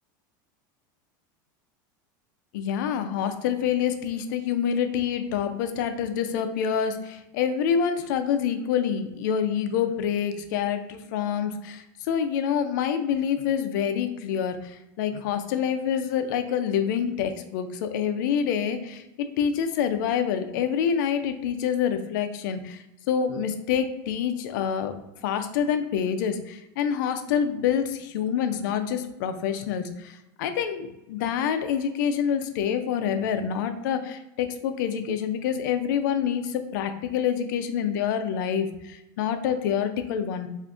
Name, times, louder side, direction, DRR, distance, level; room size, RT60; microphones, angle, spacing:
voice 1, 2.5-24.9 25.2-40.5, left 8 dB, 70° left, 8 dB, 0.4 m, -27 dB
2.5 x 2.4 x 3.6 m, 0.92 s
supercardioid pair, 155°, 11 cm